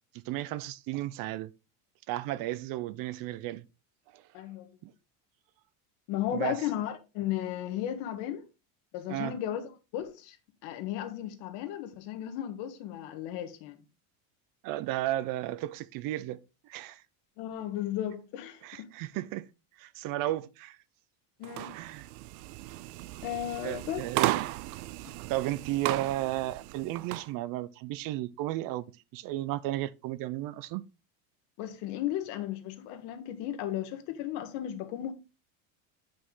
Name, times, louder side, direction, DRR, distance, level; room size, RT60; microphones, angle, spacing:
voice 1, 0.3-1.5 2.1-3.6 4.1-4.2 4.8-4.9 6.3-6.6 9.1-9.4 14.6-17.0 18.6-19.5 19.8-20.8 21.7-22.1 23.6-24.3 25.3-30.8, right 15 dB, 50° right, 0.6 m, -34 dB
voice 2, 4.3-4.7 6.1-8.4 8.9-10.4 10.6-13.8 17.4-18.9 21.4-21.8 23.2-24.0 31.6-35.1, left 12 dB, 70° left, 1.5 m, -35 dB
sound 1, 21.4-27.3, right 17 dB, 90° right, 0.6 m, -35 dB
8.5 x 5.2 x 3.7 m
cardioid pair, 140°, 43 cm